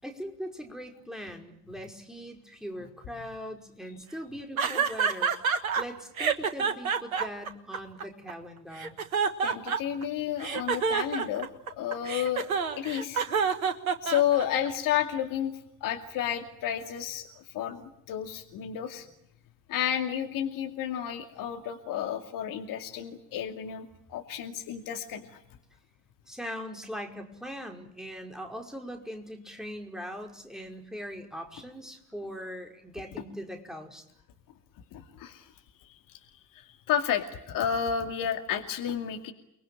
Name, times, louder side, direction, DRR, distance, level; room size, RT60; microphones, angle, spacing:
voice 1, 0.0-5.4 5.8-9.0 26.3-34.0, equal, ahead, 2 dB, 5.2 m, -40 dB
sound 1, 4.6-5.8 6.2-8.3 8.8-10.0 10.4-14.7, right 6 dB, 75° right, 1.5 m, -28 dB
voice 2, 9.4-11.5 11.8-13.2 14.0-15.5 15.8-19.1 19.7-25.4 34.9-35.5 36.1-39.3, left 9 dB, 50° left, 4 dB, 2.5 m, -31 dB
29.5 x 21.0 x 9.0 m, 0.77 s
figure-of-eight pair, 55°, 41 cm